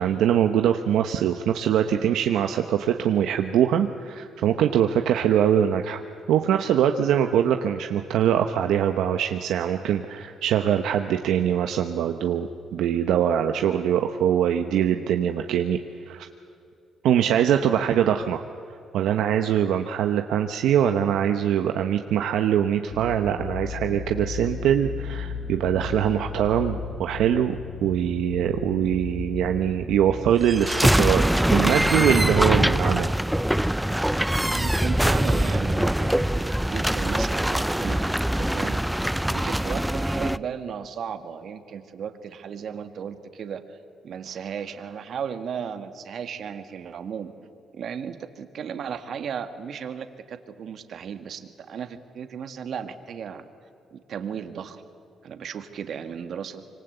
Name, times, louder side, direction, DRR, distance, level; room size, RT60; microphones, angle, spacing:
voice 1, 0.0-6.0 6.3-15.8 16.1-16.3 17.0-18.4 18.9-27.5 27.8-33.1, right 9 dB, 85° right, 6 dB, 1.0 m, -23 dB
sound 1, 22.9-30.9, left 5 dB, 65° left, 4.4 m, -35 dB
sound 2, 30.4-40.4, right 1 dB, 5° right, 0.5 m, -23 dB
voice 2, 34.5-38.8 39.3-43.6 44.0-47.3 47.7-53.4 53.9-54.8 55.2-56.6, right 7 dB, 65° right, 8 dB, 1.8 m, -35 dB
25.5 x 24.5 x 8.0 m, 2.6 s
cardioid pair, 90°, 0 cm